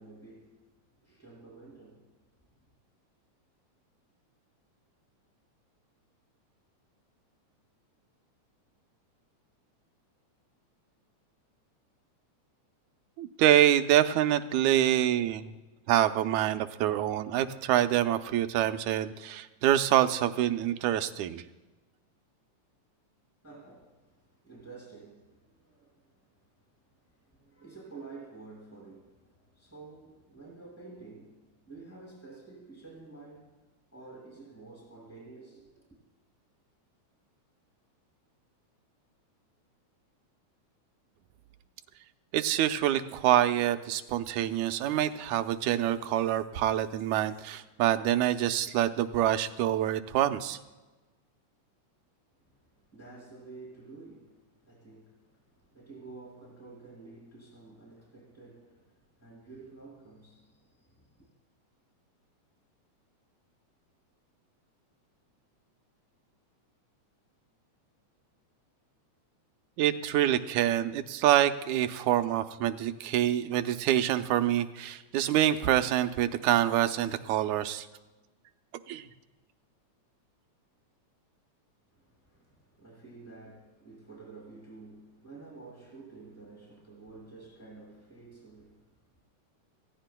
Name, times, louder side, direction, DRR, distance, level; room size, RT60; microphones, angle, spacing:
voice 1, 0.0-2.2 23.4-26.3 26.9-33.6 33.9-35.9 52.6-61.3 81.9-89.0, right 3 dB, 5° left, 5.0 m, -50 dB
voice 2, 13.2-15.6 15.9-21.4 42.3-50.6 69.8-77.9 78.9-79.1, right 12 dB, 85° right, 2.1 m, -26 dB
26.5 x 16.5 x 2.2 m
omnidirectional pair, 3.4 m